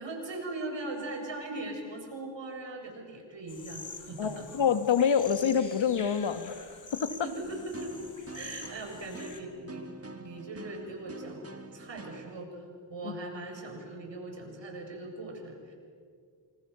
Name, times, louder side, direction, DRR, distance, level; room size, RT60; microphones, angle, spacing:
voice 1, 0.0-4.5 7.1-7.9 8.3-9.8 10.1-11.4 11.7-12.6 12.9-15.7, right 2 dB, 70° right, 3 dB, 7.3 m, -40 dB
sound 1, 3.5-9.4, left 4 dB, 40° left, 3.2 m, -46 dB
voice 2, 4.2-7.1 13.0-13.1, left 7 dB, 75° left, 10 dB, 1.8 m, -27 dB
sound 2, 7.4-12.4, right 2 dB, 30° right, 2.1 m, -46 dB
30.0 x 27.5 x 7.0 m, 2.1 s
cardioid pair, 70°, 45 cm